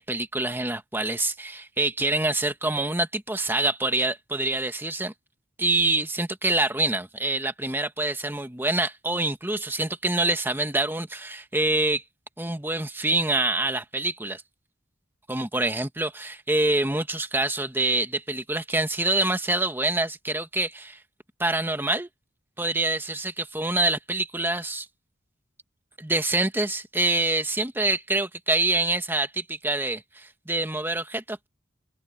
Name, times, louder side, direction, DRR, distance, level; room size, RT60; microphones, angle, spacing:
voice 1, 0.0-5.1 5.6-12.0 12.4-14.4 15.3-21.0 21.4-22.1 22.6-24.9 26.0-31.5, right 2 dB, 10° right, 1.5 m, -26 dB
open air
head